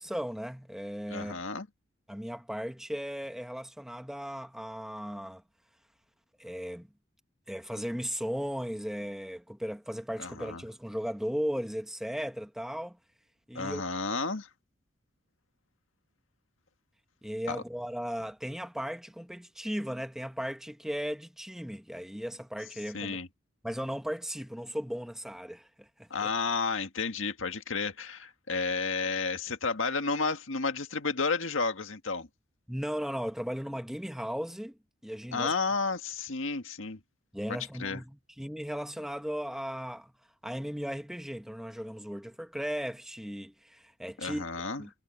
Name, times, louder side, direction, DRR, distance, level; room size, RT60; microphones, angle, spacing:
voice 1, 0.0-1.4 2.1-5.4 6.4-6.9 7.5-13.0 13.5-13.8 17.2-23.2 23.6-26.3 32.7-34.8 35.0-35.5 37.3-40.1 40.4-44.5 44.8-44.9, equal, ahead, 1.2 m, -36 dB
voice 2, 1.1-1.7 10.2-10.6 13.6-14.5 17.5-17.6 22.9-23.3 26.1-32.3 35.3-37.0 37.5-38.0 44.2-44.8, left 4 dB, 85° left, 1.7 m, -32 dB
head